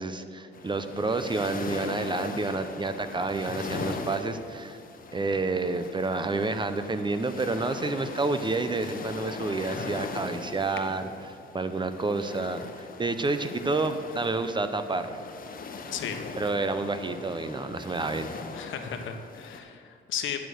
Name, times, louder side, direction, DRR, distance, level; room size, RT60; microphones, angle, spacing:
voice 1, 0.0-4.8 5.1-11.1 11.5-15.1 16.3-18.4, right 3 dB, 25° right, 9 dB, 0.7 m, -29 dB
sound 1, 0.5-19.6, left 4 dB, 45° left, 1.1 m, -40 dB
voice 2, 18.5-20.4, left 8 dB, 75° left, 6 dB, 1.1 m, -35 dB
11.0 x 7.1 x 6.4 m, 2.5 s
cardioid pair, 90°, 20 cm